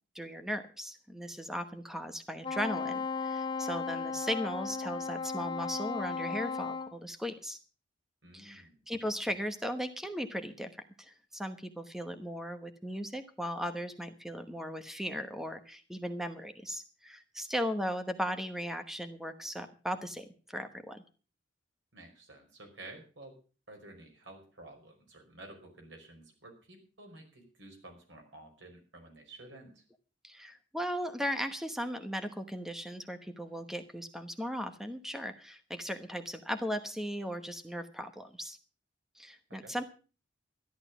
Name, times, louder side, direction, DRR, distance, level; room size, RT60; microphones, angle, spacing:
voice 1, 0.1-7.6 8.3-10.7 11.0-21.0 30.2-38.6 39.2-39.8, equal, ahead, 9 dB, 1.0 m, -37 dB
Wind instrument woodwind instrument, 2.4-6.9, left 5 dB, 25° left, 1.1 m, -35 dB
voice 2, 8.2-8.8 21.9-23.4 23.7-29.8 39.6-39.7, right 2 dB, 90° right, 3 dB, 5.3 m, -52 dB
13.0 x 11.5 x 6.0 m, 0.37 s
head